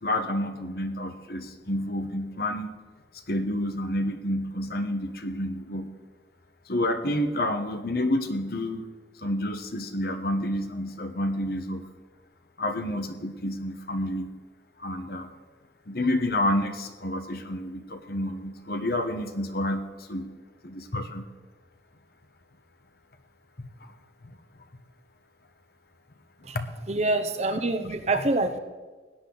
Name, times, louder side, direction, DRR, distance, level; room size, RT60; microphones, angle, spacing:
voice 1, 0.0-2.7 3.3-5.9 6.7-8.8 9.2-11.8 12.6-14.3 14.8-15.3 15.9-20.3 20.6-21.3 24.2-24.4 26.5-26.7 27.5-27.6 28.1-28.2, left 1 dB, 55° left, 7 dB, 1.1 m, -29 dB
voice 2, 26.9-28.6, right 2 dB, 35° right, 8 dB, 0.8 m, -26 dB
16.5 x 10.5 x 3.9 m, 1.4 s
head